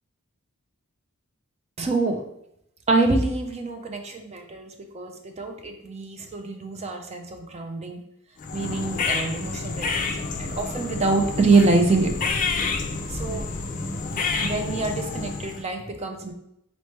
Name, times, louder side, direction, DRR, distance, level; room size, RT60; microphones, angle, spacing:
voice 1, 1.8-2.2 2.9-8.0 8.5-12.1 13.1-13.5 14.4-16.3, right 3 dB, 30° right, 4 dB, 0.5 m, -25 dB
sound 1, 8.4-15.7, left 4 dB, 35° left, 0.4 m, -29 dB
4.1 x 3.2 x 3.2 m, 0.77 s
head